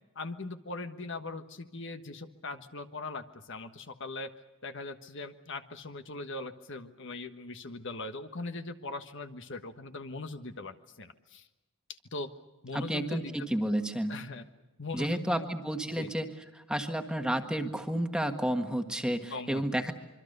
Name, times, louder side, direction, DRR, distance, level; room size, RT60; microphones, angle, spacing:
voice 1, 0.1-4.3 4.6-11.5 12.1-12.3 12.6-13.5 14.1-14.4 14.8-15.5 16.0-16.1 19.3-19.6, left 3 dB, 55° left, 8 dB, 1.4 m, -40 dB
voice 2, 12.7-14.2 14.9-19.9, right 1 dB, 5° right, 5 dB, 1.6 m, -31 dB
26.0 x 24.0 x 6.7 m, 1.1 s
head